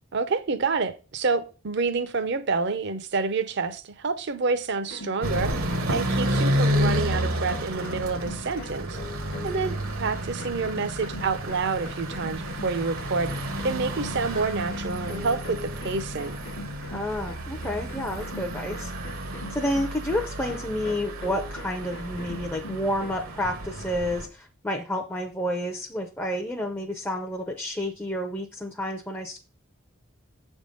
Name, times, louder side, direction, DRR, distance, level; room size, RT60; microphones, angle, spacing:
voice 1, 0.1-5.5 5.9-9.0 9.4-16.4, right 4 dB, 50° right, 0.5 m, -28 dB
sound 1, 4.8-9.7 10.0-23.2, left 2 dB, 45° left, 0.8 m, -42 dB
sound 2, 5.2-24.3, equal, 70° right, 0.9 m, -31 dB
voice 2, 16.9-18.9 19.5-29.4, left 1 dB, 10° left, 0.5 m, -30 dB
7.0 x 3.6 x 5.2 m
head